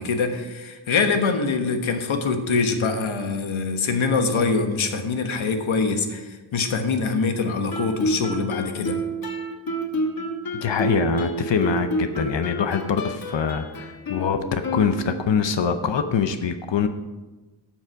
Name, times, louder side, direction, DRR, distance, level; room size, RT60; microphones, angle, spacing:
voice 1, 0.0-9.0, left 4 dB, 90° left, 6 dB, 1.3 m, -24 dB
Guitar, 7.7-15.4, right 1 dB, 50° left, 1.3 m, -29 dB
voice 2, 10.5-16.9, left 6 dB, 70° left, 8 dB, 0.8 m, -24 dB
13.0 x 7.3 x 4.7 m, 1.2 s
wide cardioid pair, 175°, 47 cm